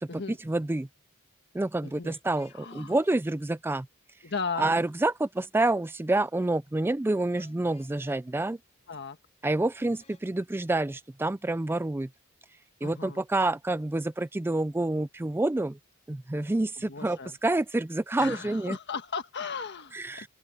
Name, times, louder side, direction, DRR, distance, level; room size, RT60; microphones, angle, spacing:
voice 1, 0.5-0.9 1.5-3.9 4.6-8.6 9.4-12.1 12.8-15.8 16.1-18.8 19.9-20.3, right 2 dB, 10° right, 0.3 m, -28 dB
voice 2, 1.8-2.2 2.5-2.9 4.2-4.7 8.9-9.2 12.8-13.2 16.8-17.4 18.2-20.3, left 5 dB, 55° left, 1.6 m, -36 dB
sound 1, 2.0-3.2 7.4-8.2 9.8-10.2, left 5 dB, 30° left, 5.2 m, -58 dB
open air
head